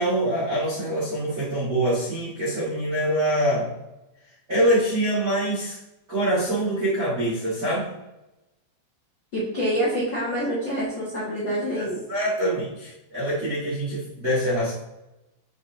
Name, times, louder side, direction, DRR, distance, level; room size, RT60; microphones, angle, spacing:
voice 1, 0.0-3.7 4.5-5.8 6.1-7.9 11.7-14.7, right 1 dB, 70° right, -9 dB, 0.7 m, -24 dB
voice 2, 9.3-12.0, equal, 85° left, -8 dB, 0.9 m, -26 dB
7.2 x 5.5 x 2.7 m, 0.95 s
omnidirectional pair, 5.0 m